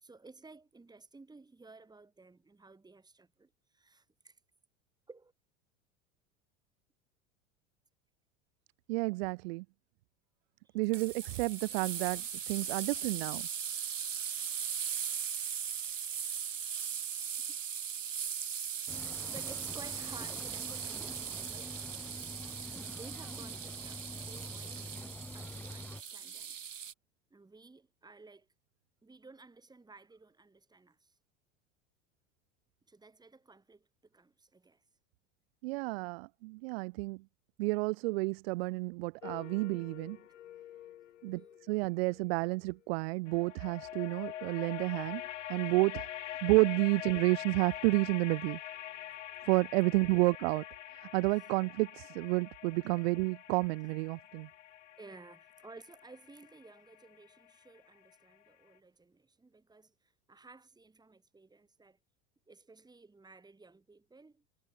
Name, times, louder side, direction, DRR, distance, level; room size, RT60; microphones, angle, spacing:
voice 1, 0.0-4.4 5.1-5.3 17.5-17.6 19.3-21.7 22.8-24.7 25.3-26.6 27.3-28.5 29.0-31.2 32.9-34.8 41.3-41.6 50.1-50.2 53.0-53.1 55.0-62.0 62.5-64.4, right 3 dB, 10° right, 3.4 m, -55 dB
voice 2, 8.9-9.6 10.7-12.2 12.5-13.5 35.6-37.2 37.6-40.2 41.2-45.2 45.5-46.1 46.4-48.6 49.4-50.6 51.0-54.5, right 25 dB, 55° right, 0.7 m, -30 dB
sound 1, 10.9-26.9, right 8 dB, 85° right, 1.1 m, -39 dB
Cricket / Waves surf, 18.9-26.0, left 2 dB, 5° left, 1.1 m, -46 dB
sound 2, 39.2-42.5 43.3-58.1, left 12 dB, 70° left, 1.5 m, -45 dB
figure-of-eight pair, 80°, 38 cm